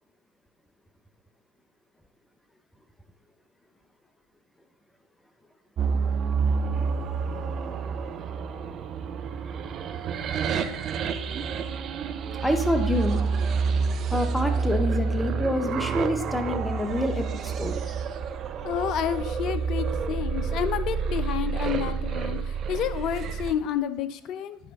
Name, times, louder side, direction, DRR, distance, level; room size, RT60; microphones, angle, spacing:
sound 1, 5.8-23.5, right 5 dB, 45° right, 0.6 m, -28 dB
voice 1, 12.4-13.2 14.1-17.9, left 1 dB, 5° left, 7 dB, 0.8 m, -27 dB
voice 2, 18.6-24.6, left 10 dB, 50° left, 13 dB, 0.5 m, -30 dB
10.0 x 3.4 x 5.1 m, 0.81 s
figure-of-eight pair, 70°, 0 cm